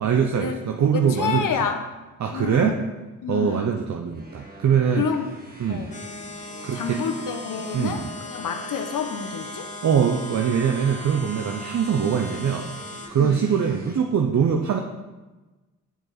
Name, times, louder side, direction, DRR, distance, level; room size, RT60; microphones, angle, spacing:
voice 1, 0.0-1.5 2.2-2.8 3.3-5.1 5.6-5.9 6.6-7.0 7.7-8.1 9.8-12.7 13.1-14.8, right 7 dB, 55° right, 3 dB, 0.8 m, -22 dB
voice 2, 0.9-1.8 2.3-2.8 3.2-3.7 5.0-5.3 5.7-5.9 6.7-9.7 13.2-13.4, left 6 dB, 70° left, 5 dB, 1.1 m, -28 dB
sound 1, 4.1-14.0, right 1 dB, 25° right, 2.1 m, -46 dB
sound 2, 5.9-13.1, left 1 dB, 20° left, 1.2 m, -38 dB
9.2 x 6.4 x 4.1 m, 1.2 s
supercardioid pair, 50°, 33 cm